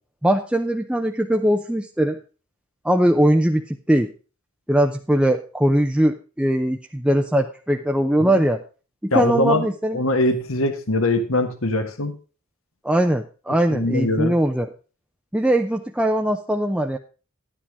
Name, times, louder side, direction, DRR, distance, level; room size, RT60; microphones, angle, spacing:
voice 1, 0.2-2.2 2.8-4.1 4.7-8.6 9.0-10.0 12.8-14.7 15.3-17.0, right 1 dB, 5° right, 3 dB, 0.6 m, -20 dB
voice 2, 9.1-9.7 9.9-12.1 13.7-14.3, left 2 dB, 70° left, 8 dB, 1.5 m, -22 dB
11.5 x 10.0 x 3.5 m, 0.35 s
head